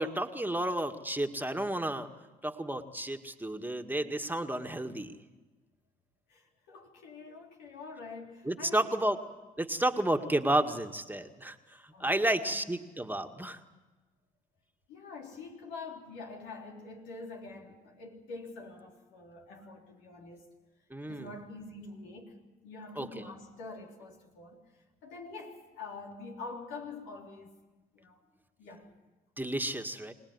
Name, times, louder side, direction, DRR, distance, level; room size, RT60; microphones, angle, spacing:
voice 1, 0.0-2.1 2.4-5.1 8.5-9.2 9.6-13.6 20.9-21.4 23.0-23.3 29.4-30.1, right 1 dB, 10° right, 2.0 m, -31 dB
voice 2, 6.3-9.1 11.9-12.6 14.9-20.5 21.0-22.4 22.6-27.5 27.9-28.2 28.6-29.0, left 3 dB, 85° left, 3.7 m, -46 dB
26.0 x 18.5 x 9.8 m
hypercardioid pair, 55°, 19 cm